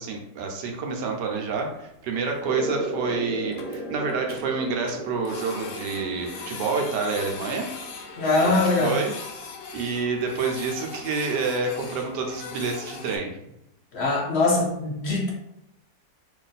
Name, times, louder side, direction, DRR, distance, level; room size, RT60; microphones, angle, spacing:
voice 1, 0.0-7.7 8.4-9.1 9.7-13.4, right 4 dB, 80° right, 2 dB, 1.3 m, -28 dB
Printer, 1.6-1.9 2.3-2.4 2.7-2.8 3.1-3.2 3.4-4.4 4.9-13.2, left 5 dB, 80° left, 1.2 m, -39 dB
sound 1, 2.4-9.6, right 1 dB, 10° left, 0.4 m, -36 dB
voice 2, 8.2-8.9 13.9-15.3, left 3 dB, 55° left, -2 dB, 0.7 m, -22 dB
3.1 x 2.6 x 3.9 m, 0.82 s
omnidirectional pair, 1.8 m